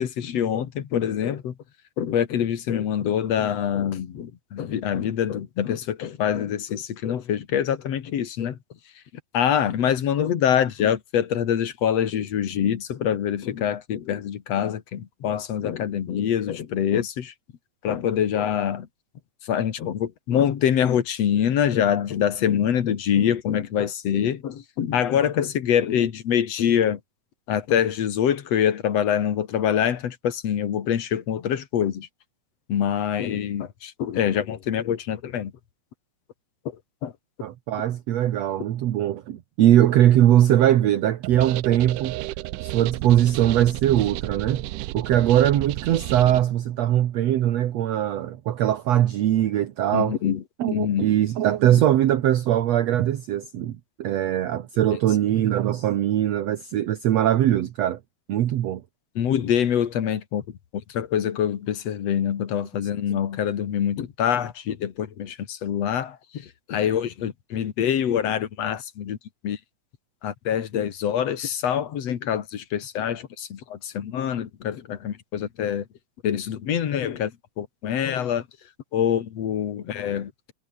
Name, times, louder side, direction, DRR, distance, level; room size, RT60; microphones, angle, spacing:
voice 1, 0.0-1.5 2.0-8.6 9.3-17.3 17.8-18.9 19.4-27.0 27.5-32.1 32.7-35.5 37.0-37.1 49.9-50.4 50.7-51.0 59.2-60.4 60.7-69.2 69.4-69.6 70.2-75.9 76.2-78.5 78.9-80.5, left 9 dB, 55° left, 2.7 m, -25 dB
voice 2, 37.4-42.2 42.6-44.7 44.9-50.2 50.6-58.0 58.3-58.8 63.1-63.2, right 12 dB, 60° right, 2.1 m, -21 dB
sound 1, 41.2-46.4, right 18 dB, 90° right, 2.2 m, -33 dB
omnidirectional pair, 3.7 m